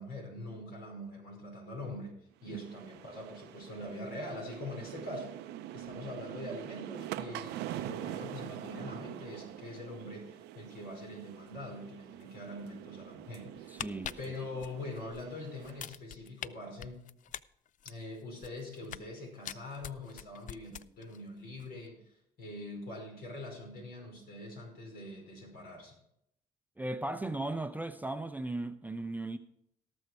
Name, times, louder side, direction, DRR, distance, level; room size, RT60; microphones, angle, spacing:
voice 1, 0.0-2.1 2.4-5.3 5.7-13.9 14.2-17.0 17.8-25.9, left 1 dB, 65° left, 5.1 m, -43 dB
sound 1, 2.4-15.9, right 13 dB, 85° right, 0.6 m, -45 dB
sound 2, 13.6-15.2 15.6-16.5 16.8-19.1 19.4-21.2 21.5-21.7, left 10 dB, 50° left, 0.4 m, -43 dB
voice 2, 13.7-14.2 26.8-29.4, right 2 dB, 10° right, 0.6 m, -36 dB
17.5 x 6.3 x 4.6 m
supercardioid pair, 75°, 17 cm